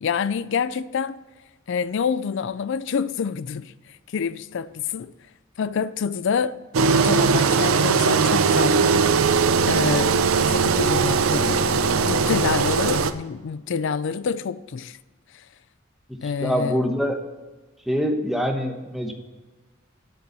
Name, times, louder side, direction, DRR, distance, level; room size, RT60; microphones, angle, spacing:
voice 1, 0.0-1.2 1.7-3.7 4.1-5.1 5.6-6.6 6.9-9.1 9.7-10.2 10.5-11.7 12.0-15.0 16.2-16.9, left 6 dB, 60° left, 0.4 m, -27 dB
Engine, 6.7-13.1, right 5 dB, 80° right, 0.6 m, -20 dB
voice 2, 16.2-17.2 17.9-19.1, equal, ahead, 1.0 m, -24 dB
8.0 x 7.0 x 7.5 m
head